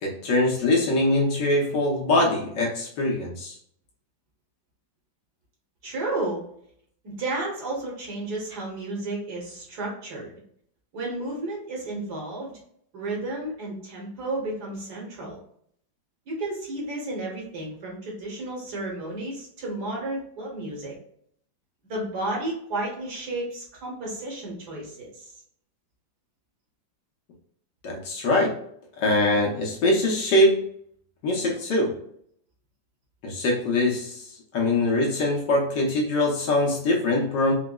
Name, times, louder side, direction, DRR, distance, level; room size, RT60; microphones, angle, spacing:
voice 1, 0.0-3.6 27.8-28.5 29.0-30.6 31.2-31.9 33.2-34.2 34.5-37.5, left 1 dB, 65° left, -2 dB, 1.4 m, -23 dB
voice 2, 5.8-6.4 7.0-10.3 10.9-12.6 12.9-15.4 16.3-20.9 21.9-25.3, right 2 dB, 60° right, -2 dB, 1.6 m, -32 dB
4.8 x 2.1 x 2.2 m, 0.65 s
omnidirectional pair, 2.1 m